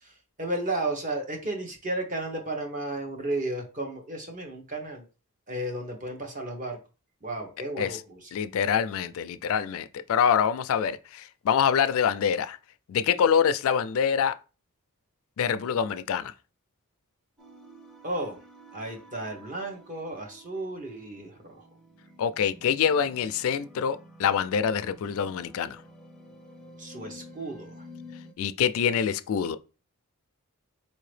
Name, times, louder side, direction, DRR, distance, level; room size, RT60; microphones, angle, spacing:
voice 1, 0.0-5.1 5.5-6.8 7.2-8.3 18.0-18.4 18.7-21.6 26.8-27.9, right 2 dB, 35° right, 1.0 m, -33 dB
voice 2, 8.3-12.6 12.9-14.3 15.4-16.3 22.2-25.8 28.4-29.6, left 7 dB, 65° left, 0.3 m, -25 dB
sound 1, 17.4-28.3, left 1 dB, ahead, 0.6 m, -50 dB
4.3 x 2.8 x 3.2 m
head